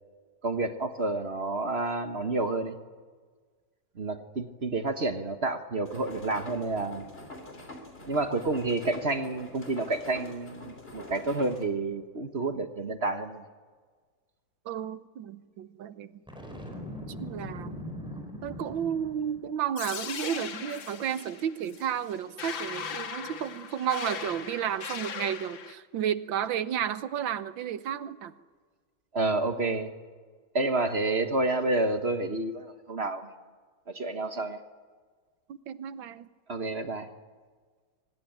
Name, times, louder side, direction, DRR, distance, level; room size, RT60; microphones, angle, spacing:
voice 1, 0.4-2.8 4.0-7.1 8.1-13.4 29.1-29.9 30.5-33.2 33.9-34.6 36.5-37.1, right 2 dB, 35° right, 7 dB, 1.3 m, -29 dB
sound 1, 5.8-11.7, left 1 dB, 30° left, 3.2 m, -45 dB
voice 2, 14.7-16.1 17.2-17.8 18.4-28.3 35.5-36.3, right 9 dB, 75° right, 13 dB, 1.7 m, -32 dB
Boom, 16.3-19.5, equal, ahead, 5.0 m, -40 dB
sound 2, 19.8-25.7, left 7 dB, 75° left, 2.1 m, -38 dB
24.5 x 19.5 x 9.0 m, 1.5 s
omnidirectional pair, 2.1 m